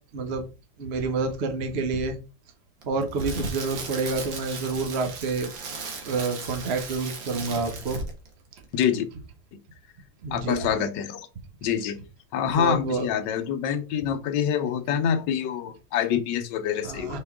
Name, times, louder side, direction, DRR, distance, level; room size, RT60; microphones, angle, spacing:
voice 1, 0.1-0.4 0.8-2.2 2.9-5.5 6.0-8.0 10.2-10.6 12.5-13.1 16.8-17.2, right 4 dB, 50° right, 6 dB, 0.9 m, -28 dB
Crackle, 2.8-8.3 8.6-8.8, right 4 dB, 80° right, 2.1 m, -36 dB
voice 2, 8.7-9.0 10.3-11.2 11.6-12.0 12.3-17.2, left 8 dB, 70° left, 8 dB, 1.4 m, -26 dB
6.0 x 4.4 x 3.5 m, 0.32 s
omnidirectional pair, 2.0 m